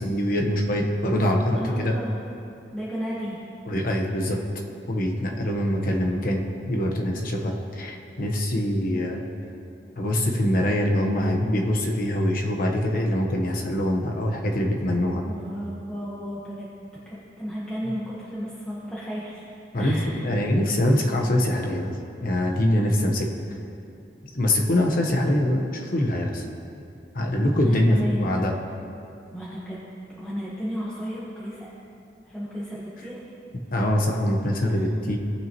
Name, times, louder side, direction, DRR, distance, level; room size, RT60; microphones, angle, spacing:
voice 1, 0.0-1.9 3.7-4.4 4.9-9.2 10.0-15.3 19.7-21.9 22.2-23.3 24.3-26.4 27.1-28.5 33.7-35.2, left 1 dB, 55° left, 1 dB, 1.1 m, -24 dB
voice 2, 1.6-2.1 2.7-3.4 15.3-16.7 17.0-19.4 19.8-20.1 22.5-22.6 27.6-28.3 29.3-29.8 30.2-31.7 32.2-33.2 34.7-34.8, equal, 5° left, -9 dB, 1.2 m, -33 dB
17.5 x 6.0 x 3.0 m, 2.6 s
head